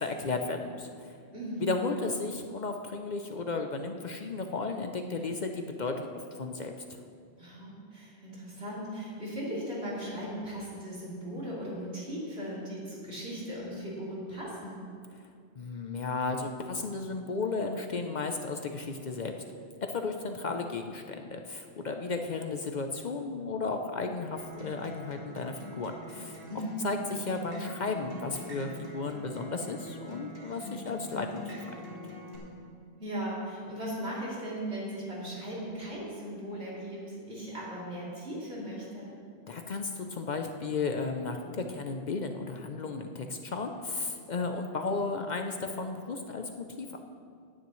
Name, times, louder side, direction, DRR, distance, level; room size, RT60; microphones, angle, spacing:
voice 1, 0.0-1.1 1.6-7.0 15.6-19.3 19.9-26.4 26.8-31.6 39.5-47.0, left 3 dB, 50° left, 5 dB, 0.7 m, -34 dB
voice 2, 1.3-1.8 7.4-14.8 26.5-27.0 33.0-39.1, right 1 dB, 80° right, -7 dB, 3.5 m, -38 dB
Acoustic guitar, 24.4-32.4, left 1 dB, 60° right, 2.3 m, -43 dB
16.5 x 10.0 x 3.1 m, 2.3 s
omnidirectional pair, 1.1 m